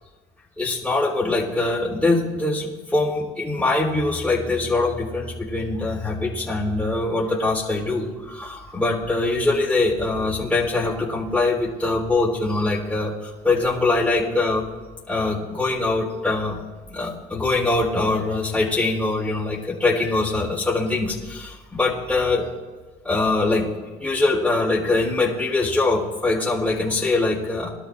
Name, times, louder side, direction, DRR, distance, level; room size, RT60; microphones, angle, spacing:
voice 1, 0.6-14.7 15.1-16.6 16.9-22.5 23.0-23.7 24.0-27.7, left 2 dB, 5° left, -6 dB, 3.8 m, -23 dB
22.5 x 12.5 x 2.6 m, 1.4 s
cardioid pair, 110°, 17 cm